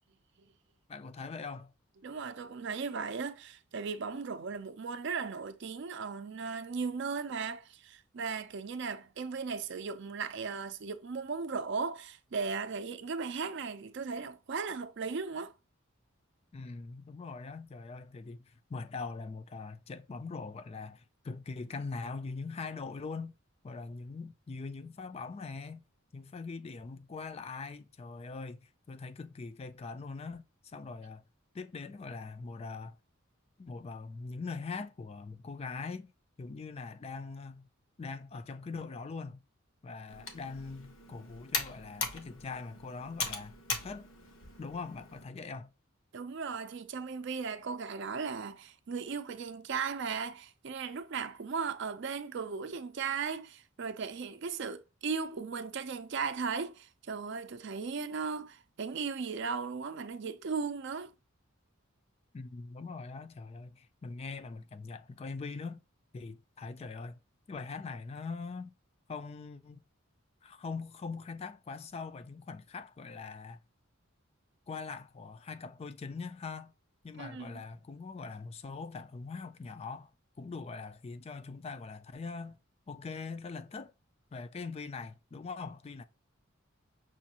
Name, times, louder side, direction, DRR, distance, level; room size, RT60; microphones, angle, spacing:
voice 1, 0.9-1.7 16.5-23.3 23.6-25.8 26.1-31.2 31.5-33.0 33.6-36.1 36.4-37.7 38.0-39.4 39.8-43.6 43.8-44.1 44.6-45.7 62.3-65.8 66.1-67.2 67.5-68.7 69.1-69.8 70.4-73.6 74.7-76.7 77.0-80.1 80.4-82.6 82.9-83.9 84.3-86.0, left 4 dB, 30° left, 0.3 m, -42 dB
voice 2, 2.0-15.5 46.1-61.1 77.2-77.6, right 5 dB, 60° right, 0.5 m, -37 dB
Computer keyboard, 40.1-45.2, left 4 dB, 75° left, 0.9 m, -39 dB
6.2 x 2.4 x 2.8 m
head